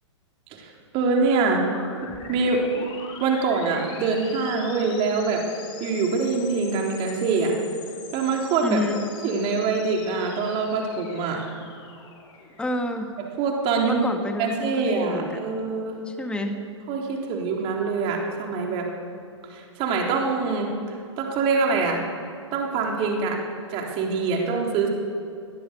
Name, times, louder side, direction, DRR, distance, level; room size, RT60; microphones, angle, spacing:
voice 1, 0.6-1.6 2.3-2.9 3.2-5.4 5.8-7.5 8.1-8.8 9.2-11.5 13.4-14.0 14.4-16.0 16.9-18.9 19.5-22.0 22.5-23.4 23.7-24.9, right 4 dB, 35° right, 0 dB, 3.9 m, -24 dB
sound 1, 1.4-13.1, left 5 dB, 30° left, 4.2 m, -43 dB
voice 2, 8.6-9.0 12.6-13.1 13.8-15.4 16.0-16.6, left 2 dB, 5° left, 5 dB, 1.7 m, -28 dB
22.0 x 19.0 x 7.0 m, 2.6 s
figure-of-eight pair, 110°, 16 cm